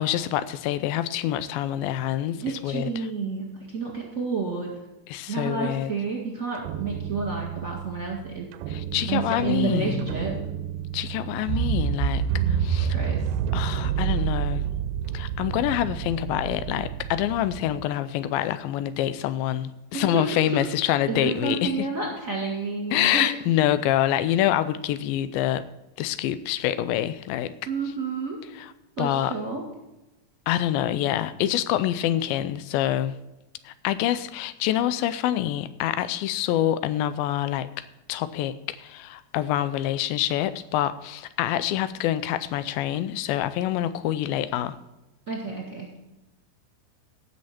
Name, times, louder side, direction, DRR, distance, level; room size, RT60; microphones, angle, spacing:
voice 1, 0.0-3.1 5.1-5.9 8.7-10.1 10.9-13.0 13.5-14.6 15.1-21.9 22.9-25.6 26.0-27.5 28.6-28.7 29.0-29.3 30.5-33.2 33.6-37.7 38.1-44.7, left 12 dB, 85° left, 13 dB, 2.3 m, -26 dB
voice 2, 2.4-4.7 5.3-8.5 9.1-10.3 12.9-13.3 19.9-20.7 21.1-23.3 27.6-28.4 29.0-29.6 45.3-45.9, right 4 dB, 30° right, -2 dB, 1.6 m, -30 dB
sound 1, 6.6-17.8, right 9 dB, 85° right, 2.4 m, -29 dB
17.0 x 6.4 x 4.3 m, 0.98 s
omnidirectional pair, 4.3 m